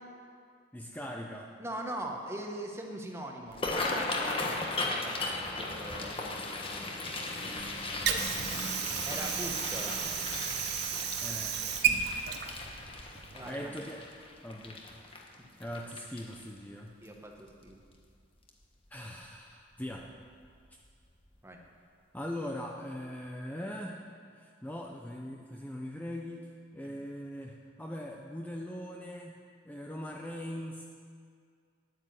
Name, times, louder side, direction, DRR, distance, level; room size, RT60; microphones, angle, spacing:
voice 1, 0.7-1.5 11.2-11.6 13.4-14.1 14.4-14.8 15.6-16.9 18.9-20.1 22.1-24.0 24.3-29.4 29.6-30.8, left 1 dB, 10° left, 0 dB, 0.6 m, -41 dB
voice 2, 1.6-4.4 4.8-6.2 6.7-6.9 9.0-10.0 13.3-13.7 17.0-17.8 21.4-21.6, right 1 dB, 15° right, 2 dB, 1.2 m, -41 dB
sound 1, 3.5-16.6 17.1-17.3 17.7-18.1 18.5-18.6 19.9-20.1 20.4-20.5 21.0-21.1, left 2 dB, 30° left, 1.3 m, -37 dB
Water / Sink (filling or washing), 7.6-13.6, right 8 dB, 55° right, 0.8 m, -33 dB
9.9 x 9.2 x 7.9 m, 2.2 s
head